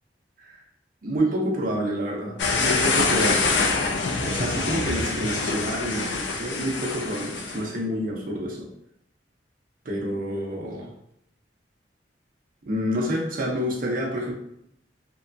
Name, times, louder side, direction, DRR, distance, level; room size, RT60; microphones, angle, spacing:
voice 1, 1.0-3.4 4.2-8.7 9.8-10.9 12.7-14.3, equal, 50° right, -1 dB, 0.6 m, -28 dB
sound 1, 2.4-7.6, left 4 dB, 80° left, 0.4 m, -25 dB
2.8 x 2.2 x 2.5 m, 0.74 s
head